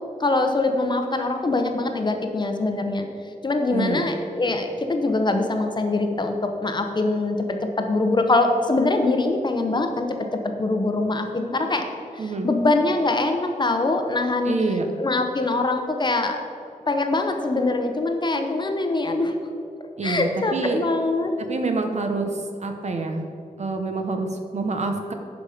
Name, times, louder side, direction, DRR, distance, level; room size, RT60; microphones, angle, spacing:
voice 1, 0.2-3.1 3.4-7.4 7.8-10.1 10.6-11.8 12.1-14.5 15.0-16.4 16.9-19.3 20.0-21.3, left 2 dB, 35° left, 5 dB, 0.8 m, -23 dB
voice 2, 3.7-4.0 12.2-12.5 14.5-14.9 20.0-20.8 21.4-23.3 23.6-25.1, right 3 dB, 55° right, 4 dB, 0.9 m, -27 dB
11.0 x 5.3 x 5.0 m, 2.6 s
wide cardioid pair, 150°, 14 cm